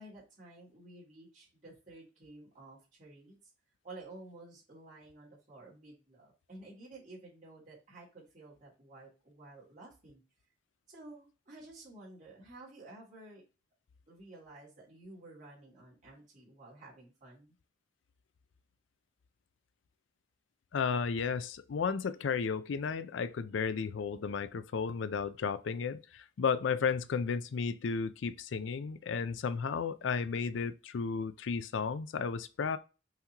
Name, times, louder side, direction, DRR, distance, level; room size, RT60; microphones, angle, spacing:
voice 1, 0.0-3.5 3.8-10.2 10.9-13.4 14.1-17.5, right 2 dB, 40° right, 2.5 m, -52 dB
voice 2, 20.7-32.8, left 5 dB, 70° left, 0.4 m, -33 dB
5.7 x 3.0 x 2.9 m
head